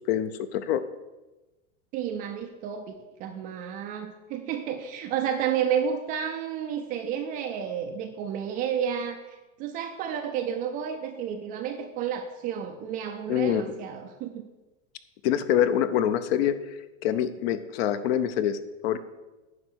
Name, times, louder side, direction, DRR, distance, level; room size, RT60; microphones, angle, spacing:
voice 1, 0.1-0.8 13.3-13.6 15.2-16.7 17.0-19.0, left 10 dB, 50° left, 13 dB, 0.7 m, -25 dB
voice 2, 1.9-14.5, right 8 dB, 25° right, 6 dB, 0.4 m, -31 dB
9.6 x 5.7 x 6.2 m, 1.1 s
supercardioid pair, 150°, 39 cm